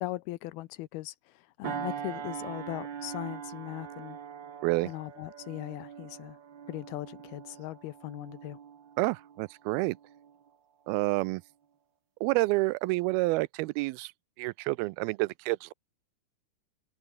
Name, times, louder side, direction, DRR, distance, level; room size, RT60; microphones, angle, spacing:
voice 1, 0.0-4.2 4.9-6.4 6.7-8.6, left 18 dB, 85° left, 2.7 m, -39 dB
sound 1, 1.6-10.5 11.0-11.2, right 8 dB, 50° right, 1.3 m, -42 dB
voice 2, 9.0-10.0 10.9-11.4 12.2-14.1 14.4-15.7, right 22 dB, 85° right, 2.4 m, -28 dB
omnidirectional pair, 4.3 m